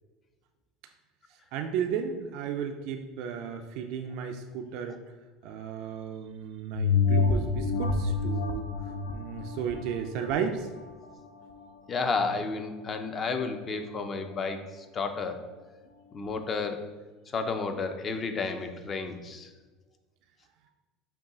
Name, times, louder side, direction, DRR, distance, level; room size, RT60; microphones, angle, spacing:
voice 1, 1.5-5.0 5.4-8.7 9.1-10.7, right 7 dB, 65° right, 6 dB, 0.3 m, -34 dB
sound 1, 6.7-11.7 12.2-12.3, left 4 dB, 85° left, 0.4 m, -28 dB
voice 2, 11.9-15.5 16.1-16.9 17.3-19.5, left 4 dB, 30° left, 7 dB, 0.5 m, -32 dB
5.4 x 2.3 x 3.8 m, 1.3 s
supercardioid pair, 110°, 0 cm